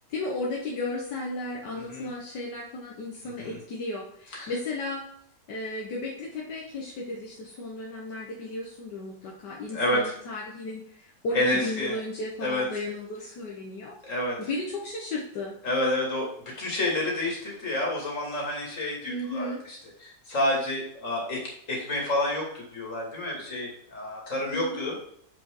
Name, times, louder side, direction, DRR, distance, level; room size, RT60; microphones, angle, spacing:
voice 1, 0.1-5.0 5.5-14.0 14.4-15.6 19.1-19.6 24.5-24.9, left 2 dB, 75° left, -3 dB, 1.8 m, -34 dB
voice 2, 9.7-10.0 11.3-11.9 12.4-12.6 14.0-14.4 15.6-16.3 16.6-19.5 20.3-21.4 21.7-24.9, left 1 dB, 45° left, -3 dB, 2.9 m, -28 dB
7.4 x 5.9 x 3.8 m, 0.68 s
omnidirectional pair, 1.8 m